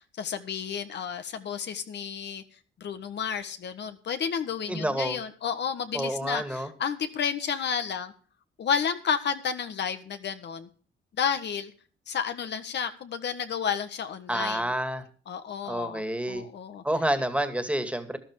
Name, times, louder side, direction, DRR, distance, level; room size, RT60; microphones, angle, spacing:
voice 1, 0.2-2.4 2.8-8.1 8.6-10.7 11.2-11.7 12.1-14.7 15.3-16.8, left 7 dB, 60° left, 9 dB, 1.6 m, -31 dB
voice 2, 4.7-5.2 5.9-6.7 14.3-15.0 15.7-16.5 16.8-18.2, right 1 dB, 5° right, 9 dB, 2.3 m, -29 dB
12.5 x 12.0 x 4.8 m, 0.40 s
cardioid pair, 90°, 20 cm